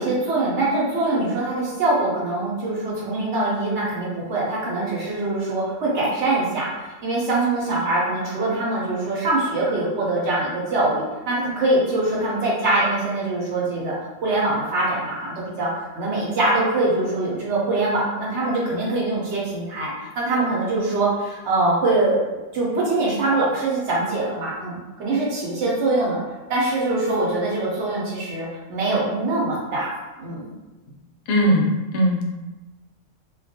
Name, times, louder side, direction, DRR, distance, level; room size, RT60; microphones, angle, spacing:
voice 1, 0.0-14.0 14.2-15.7 16.0-26.2 26.5-29.9 30.2-30.5, right 2 dB, 65° right, -5 dB, 1.0 m, -23 dB
voice 2, 31.3-32.2, equal, 65° left, -1 dB, 0.7 m, -19 dB
2.3 x 2.2 x 2.7 m, 1.1 s
omnidirectional pair, 1.3 m